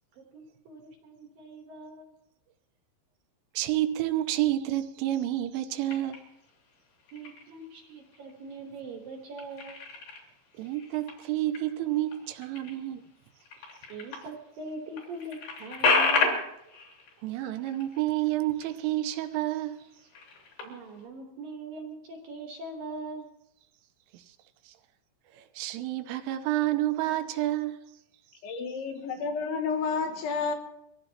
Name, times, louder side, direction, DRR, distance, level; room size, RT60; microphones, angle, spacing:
voice 1, 0.2-2.1 7.1-9.8 13.9-16.4 20.6-23.3, right 2 dB, 70° right, 2.3 m, -42 dB
voice 2, 3.5-6.2 10.6-13.1 17.2-19.8 24.1-24.2 24.7-24.8 25.3-27.8, right 14 dB, 85° right, 3.3 m, -29 dB
sound 1, 5.9-6.5 7.0-7.6 8.1-8.8 9.1-14.3 14.7-14.8 15.0-19.0 19.3-19.5 20.0-21.0, left 4 dB, 55° left, 4.3 m, -32 dB
voice 3, 28.4-30.6, left 5 dB, 75° left, 3.4 m, -30 dB
24.0 x 15.5 x 2.9 m
omnidirectional pair, 5.7 m